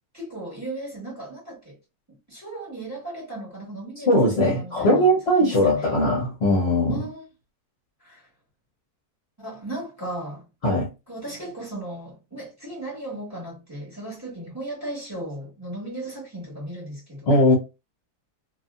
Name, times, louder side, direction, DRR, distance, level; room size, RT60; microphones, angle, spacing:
voice 1, 0.1-1.8 2.3-5.1 5.4-6.0 6.9-7.2 8.0-8.3 9.4-10.5 11.1-17.4, right 1 dB, 10° right, 1.4 m, -36 dB
voice 2, 4.1-7.1 10.6-10.9 17.3-17.5, equal, 50° left, 0.9 m, -20 dB
2.8 x 2.6 x 2.3 m
omnidirectional pair, 1.6 m